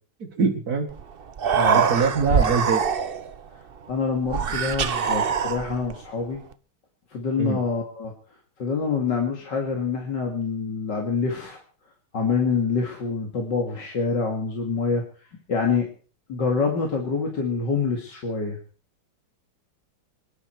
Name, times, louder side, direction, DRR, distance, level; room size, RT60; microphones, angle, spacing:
voice 1, 0.2-0.9 1.7-2.8 7.4-7.6, right 5 dB, 50° right, -1 dB, 2.3 m, -23 dB
Human voice, 0.9-1.0 1.3-3.4 4.3-5.9, right 7 dB, 85° right, 0.5 m, -23 dB
voice 2, 3.9-6.4 7.1-8.1 8.6-11.6 12.1-15.0 15.5-15.9 16.3-18.6, left 5 dB, 60° left, 1 dB, 2.8 m, -26 dB
25.5 x 11.0 x 4.6 m, 0.40 s
omnidirectional pair, 2.2 m